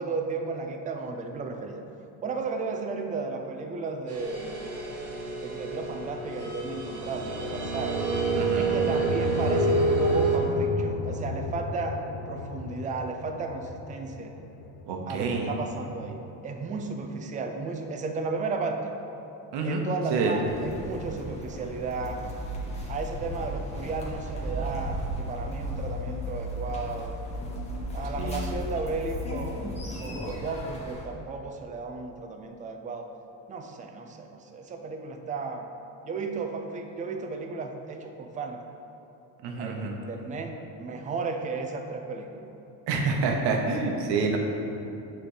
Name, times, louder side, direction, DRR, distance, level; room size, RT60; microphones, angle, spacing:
voice 1, 0.0-1.8 2.2-4.6 5.4-8.0 8.6-12.0 12.3-14.4 15.1-18.9 19.6-22.2 22.9-27.2 27.9-33.1 33.5-35.7 36.1-38.6 39.6-42.5, right 4 dB, 20° right, 5 dB, 0.4 m, -34 dB
sound 1, 4.1-10.4, right 3 dB, 35° right, 1.2 m, -28 dB
sound 2, 6.2-16.4, left 3 dB, 50° left, 0.6 m, -35 dB
voice 2, 8.4-8.9 14.9-15.5 19.5-19.8 20.1-20.4 28.2-28.6 39.4-39.9 42.9-44.4, right 4 dB, 70° right, 2 dB, 1.0 m, -28 dB
sound 3, 20.4-31.1, equal, 15° left, 1.1 m, -35 dB
7.7 x 3.4 x 4.9 m, 2.8 s
cardioid pair, 125°, 42 cm